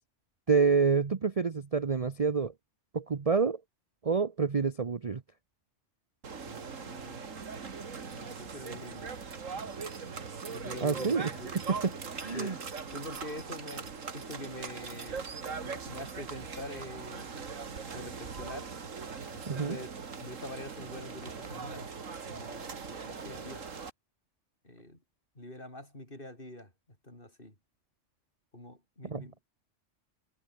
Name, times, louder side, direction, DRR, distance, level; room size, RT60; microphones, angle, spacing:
voice 1, 0.5-2.5 2.9-3.6 4.0-5.2 10.8-11.3 11.7-11.9 12.2-12.6 19.5-19.8 29.0-29.5, right 5 dB, 35° right, 0.8 m, -28 dB
sound 1, 6.2-23.9, right 5 dB, 85° right, 2.3 m, -41 dB
voice 2, 6.4-7.4 8.1-9.1 9.6-9.7 10.5-11.5 12.3-12.6 12.9-15.2 15.6-17.4 17.9-18.7 19.3-19.9 20.2-21.9 22.3-23.7 24.6-25.0 25.4-26.7 27.0-27.5 28.5-29.5, left 1 dB, 45° left, 7.3 m, -45 dB
omnidirectional pair, 1.3 m